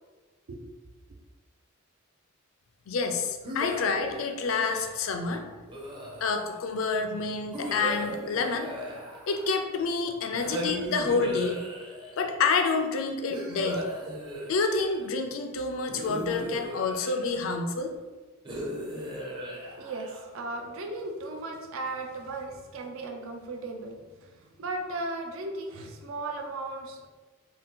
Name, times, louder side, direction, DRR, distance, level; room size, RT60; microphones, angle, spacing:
voice 1, 2.9-5.4 6.2-8.7 9.3-11.6 12.2-13.9 14.5-17.9, left 4 dB, 70° left, 5 dB, 0.4 m, -28 dB
sound 1, 3.4-5.0 5.7-6.6 7.5-9.7 10.3-12.2 13.3-15.1 15.9-17.5 18.5-20.4, equal, 25° right, 0.5 m, -37 dB
voice 2, 19.6-27.1, right 2 dB, 75° right, 3 dB, 0.4 m, -36 dB
2.7 x 2.2 x 3.5 m, 1.3 s
head